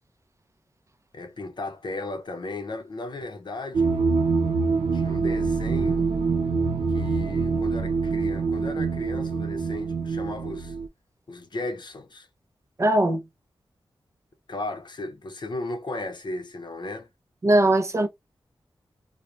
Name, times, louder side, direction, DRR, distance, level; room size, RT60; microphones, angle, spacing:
voice 1, 1.1-4.0 4.9-6.1 6.9-10.8 11.3-12.3 14.5-17.1, left 2 dB, 55° left, 0.7 m, -35 dB
sound 1, 3.7-10.9, right 4 dB, 90° right, 0.5 m, -25 dB
voice 2, 12.8-13.2 17.4-18.1, right 1 dB, 30° right, 0.5 m, -20 dB
3.0 x 2.1 x 2.4 m
wide cardioid pair, 75°, 9 cm